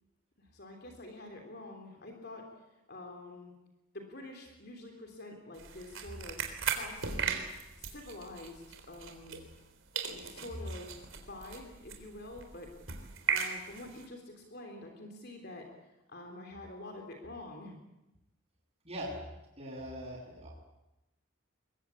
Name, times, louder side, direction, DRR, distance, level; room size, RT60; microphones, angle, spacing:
voice 1, 0.4-3.5 3.9-6.4 6.7-7.4 7.8-8.6 8.9-9.4 10.1-11.0 11.3-12.7 13.3-15.7 16.1-17.8, left 2 dB, 50° left, 3 dB, 3.5 m, -47 dB
sound 1, 5.5-9.7 9.9-14.0, right 6 dB, 75° right, 3.7 m, -38 dB
voice 2, 19.6-20.6, right 1 dB, 30° right, -4 dB, 8.0 m, -41 dB
23.0 x 21.0 x 8.5 m, 0.94 s
head